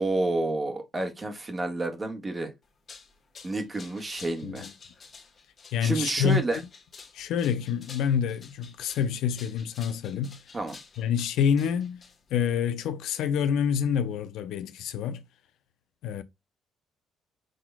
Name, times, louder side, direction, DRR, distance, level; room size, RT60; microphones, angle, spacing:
voice 1, 0.0-2.5 3.4-4.6 5.8-6.6 10.5-10.8, right 2 dB, 30° right, 1.6 m, -29 dB
sound 1, 2.6-12.5, left 5 dB, 50° left, 1.4 m, -50 dB
voice 2, 5.7-6.6 7.1-10.4 11.0-12.0 12.3-15.2 16.0-16.2, left 7 dB, 75° left, 0.5 m, -27 dB
6.3 x 3.7 x 2.2 m
hypercardioid pair, 55°, 0 cm